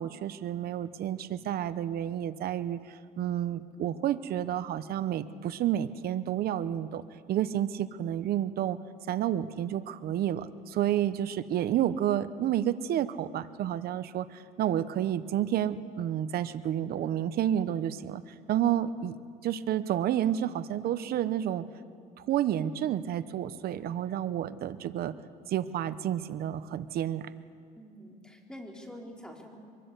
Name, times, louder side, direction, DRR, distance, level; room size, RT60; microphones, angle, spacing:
voice 1, 0.0-2.8 3.2-7.0 7.3-8.8 9.1-18.2 18.5-19.2 19.4-21.6 22.2-25.1 25.5-27.2, right 11 dB, 65° right, 13 dB, 1.0 m, -30 dB
voice 2, 27.8-29.6, equal, 5° left, 1 dB, 3.8 m, -46 dB
23.5 x 21.5 x 8.2 m, 2.3 s
cardioid pair, 110°, 17 cm